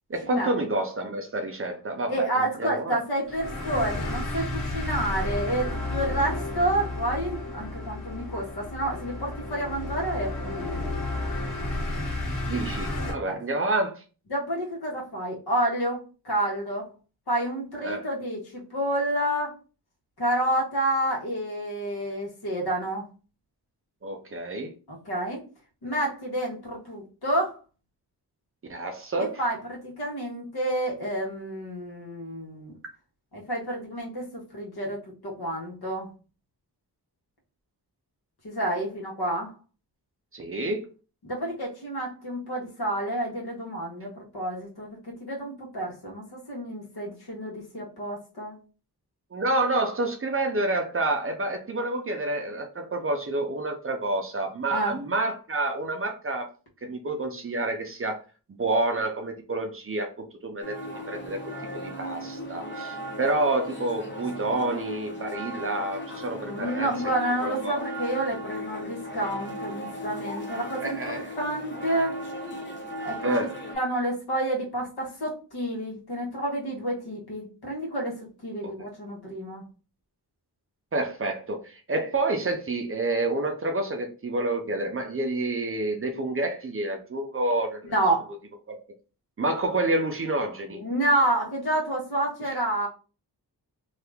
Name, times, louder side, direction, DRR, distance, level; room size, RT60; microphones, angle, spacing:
voice 1, 0.1-2.1 2.6-3.0 12.5-14.0 17.8-18.1 24.0-24.7 28.7-29.3 40.3-40.9 49.3-56.5 56.8-58.2 58.5-60.8 61.1-61.4 61.8-66.9 67.4-67.8 70.8-71.3 73.2-73.6 78.6-78.7 80.9-87.9 88.7-88.8 89.4-90.8, right 2 dB, 35° right, 0.5 m, -28 dB
voice 2, 2.1-10.9 13.2-13.4 14.3-16.9 17.3-19.5 20.2-23.0 24.9-25.4 25.8-27.6 29.1-32.7 33.3-36.1 38.4-39.5 41.2-48.6 54.7-55.0 66.4-72.2 73.0-79.6 87.9-88.3 90.8-92.9, right 1 dB, 75° left, 1.3 m, -29 dB
sound 1, 3.3-13.1, left 2 dB, 50° left, 1.2 m, -32 dB
sound 2, 60.6-73.8, equal, 30° left, 0.7 m, -37 dB
2.8 x 2.4 x 3.4 m
wide cardioid pair, 165°, 39 cm